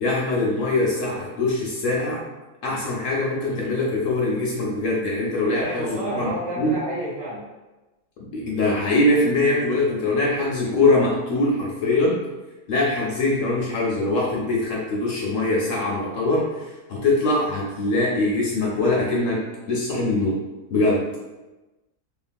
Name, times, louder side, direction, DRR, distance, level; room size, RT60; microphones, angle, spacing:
voice 1, 0.0-2.2 2.6-6.3 6.6-6.8 8.3-12.2 12.7-19.4 19.7-20.4 20.7-21.1, left 2 dB, 70° left, -3 dB, 0.8 m, -22 dB
voice 2, 5.4-7.4, right 1 dB, 70° right, -7 dB, 1.3 m, -29 dB
2.9 x 2.3 x 2.5 m, 1.1 s
omnidirectional pair, 1.6 m